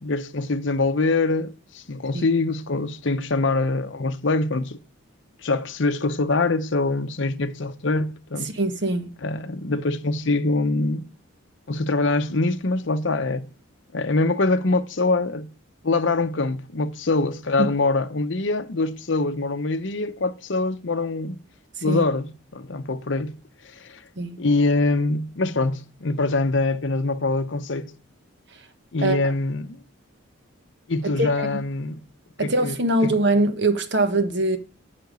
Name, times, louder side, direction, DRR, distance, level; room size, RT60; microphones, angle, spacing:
voice 1, 0.0-4.8 5.4-8.5 9.2-11.1 11.7-13.5 13.9-15.5 15.8-21.4 21.8-23.3 23.7-24.0 24.4-27.9 28.9-29.8 30.9-32.0 32.4-33.1, left 3 dB, 60° left, 0.8 m, -24 dB
voice 2, 8.4-9.1 17.6-17.7 21.9-22.0 24.2-24.4 29.0-29.2 31.2-31.5 32.4-34.6, right 2 dB, 55° right, 1.2 m, -22 dB
8.9 x 5.8 x 8.2 m
head